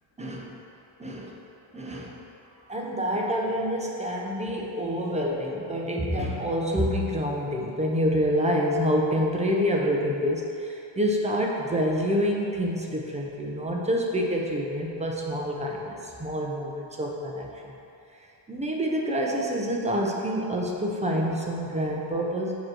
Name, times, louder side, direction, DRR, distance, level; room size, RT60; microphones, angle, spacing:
voice 1, 0.2-0.5 1.0-1.3 1.7-2.1 2.7-17.7 18.5-22.5, equal, 15° right, -1 dB, 0.6 m, -27 dB
7.7 x 3.1 x 6.1 m, 2.7 s
cardioid pair, 140°, 49 cm